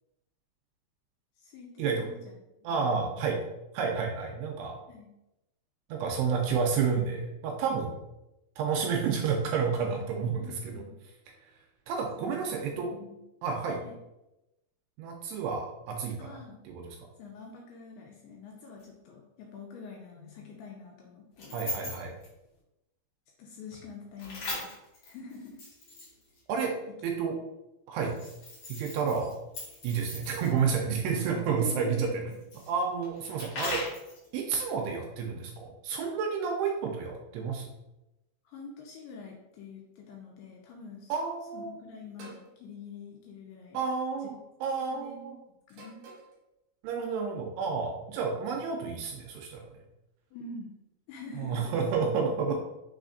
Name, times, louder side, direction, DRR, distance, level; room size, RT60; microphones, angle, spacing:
voice 1, 1.4-2.3 2.6-3.2 4.9-5.1 10.4-11.0 12.2-13.2 13.8-14.0 16.2-16.6 17.2-21.6 23.4-24.7 25.0-25.6 26.9-27.0 31.5-32.2 38.5-41.1 41.5-43.8 44.2-44.4 44.8-45.4 45.7-46.0 50.3-50.7 51.1-51.7, left 4 dB, 85° left, -1 dB, 2.4 m, -46 dB
voice 2, 2.6-3.4 3.7-4.8 5.9-8.0 8.6-10.8 11.4-11.5 11.9-12.9 13.4-13.8 15.0-16.4 16.7-17.0 21.5-22.2 26.5-26.7 27.0-27.3 27.9-28.1 28.7-29.4 29.8-32.1 32.7-33.8 34.3-37.7 41.1-41.7 43.7-45.4 46.8-49.7 51.4-52.5, right 5 dB, 85° right, 2 dB, 2.5 m, -30 dB
sound 1, 18.8-18.9 21.4-22.3 24.2-26.4 28.0-30.7 32.3-34.3, left 2 dB, 70° left, 1.4 m, -39 dB
sound 2, 42.2-42.5 43.7-44.0 45.7-46.4, right 3 dB, 65° right, 2.5 m, -50 dB
6.2 x 3.3 x 2.5 m, 0.93 s
omnidirectional pair, 5.0 m